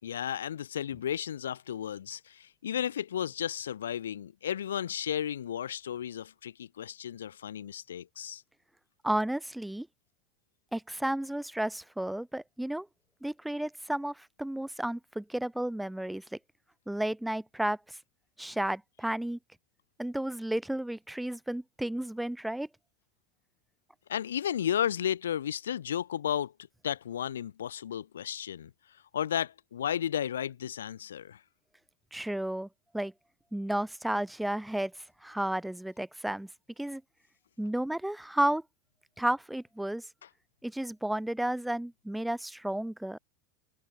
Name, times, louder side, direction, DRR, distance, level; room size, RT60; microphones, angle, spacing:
voice 1, 0.0-8.4 24.1-26.5 26.8-28.7 29.1-31.4, left 9 dB, 85° left, 3.7 m, -33 dB
voice 2, 9.0-9.9 10.7-12.9 13.2-16.2 16.9-18.0 18.4-19.4 20.0-22.7 32.1-32.7 32.9-33.1 33.5-34.9 35.2-36.5 36.8-37.0 37.6-38.6 39.2-40.1 40.6-43.2, right 1 dB, 5° right, 4.3 m, -32 dB
hypercardioid pair, 90°, 0 cm